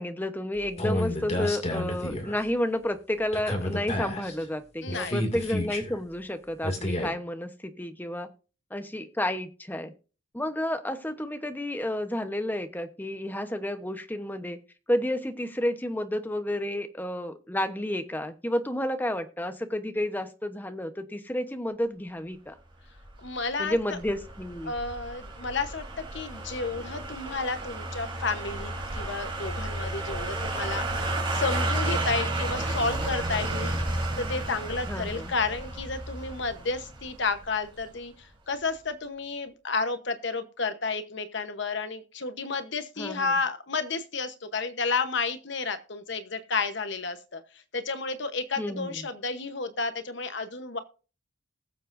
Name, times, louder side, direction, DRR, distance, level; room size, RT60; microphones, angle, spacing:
voice 1, 0.0-8.3 8.7-9.9 10.3-14.6 14.9-22.6 23.6-24.7 34.9-35.3 43.0-43.4 48.6-49.0, left 1 dB, 10° left, 9 dB, 1.0 m, -31 dB
sound 1, 0.6-2.4 3.3-4.4 4.9-6.0 6.6-7.1, left 1 dB, 30° left, 2.3 m, -30 dB
voice 2, 4.8-5.2 23.2-24.0 24.6-30.9 31.3-33.7 34.2-47.4 47.7-50.8, left 4 dB, 60° left, 10 dB, 1.0 m, -31 dB
sound 2, 23.0-37.9 38.2-38.3, right 2 dB, 25° right, 3.6 m, -32 dB
20.0 x 7.4 x 2.6 m, 0.35 s
head